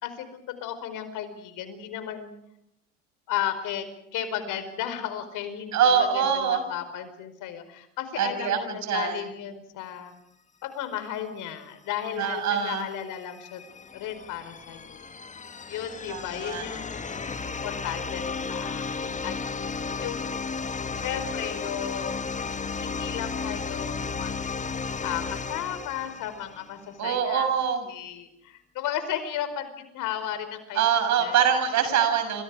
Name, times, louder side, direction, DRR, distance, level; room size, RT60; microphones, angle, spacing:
voice 1, 0.0-2.3 3.3-3.9 4.1-10.1 10.6-13.6 13.9-15.1 15.7-17.2 17.4-19.7 20.0-20.4 20.9-22.1 22.8-24.3 25.0-27.5 27.9-30.8 31.2-31.3 31.9-32.3, left 10 dB, 55° left, 10 dB, 4.8 m, -34 dB
voice 2, 5.7-6.6 8.2-9.2 12.2-12.9 16.1-16.6 27.0-27.8 30.7-32.4, right 7 dB, 50° right, 7 dB, 7.0 m, -24 dB
sound 1, 13.0-26.8, left 5 dB, 20° left, 1.6 m, -34 dB
27.5 x 27.0 x 5.0 m, 0.81 s
hypercardioid pair, 80°, 36 cm